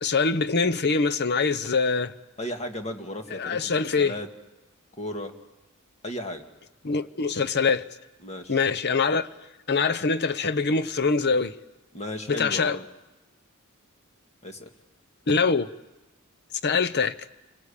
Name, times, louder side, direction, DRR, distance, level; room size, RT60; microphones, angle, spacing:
voice 1, 0.0-2.1 3.4-4.1 6.8-7.9 8.5-9.3 9.7-11.5 12.3-12.8 15.3-15.7 16.6-17.1, left 4 dB, 50° left, 0.9 m, -24 dB
voice 2, 2.4-4.3 5.0-5.3 6.0-6.5 8.2-8.6 11.9-12.9 14.4-14.7, left 1 dB, 30° left, 2.0 m, -35 dB
29.0 x 21.0 x 8.5 m
head